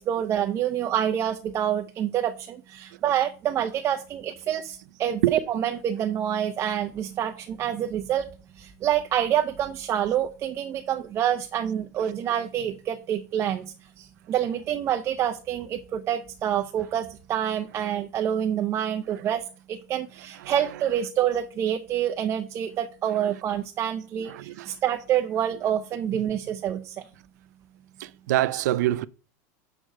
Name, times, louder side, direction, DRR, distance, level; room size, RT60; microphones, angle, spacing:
voice 1, 0.0-8.3 8.5-27.0, right 10 dB, 30° right, 0.5 m, -27 dB
voice 2, 24.3-24.8 26.1-26.2 28.0-29.1, right 15 dB, 90° right, 0.5 m, -26 dB
6.4 x 4.5 x 6.4 m
supercardioid pair, 150°, 9 cm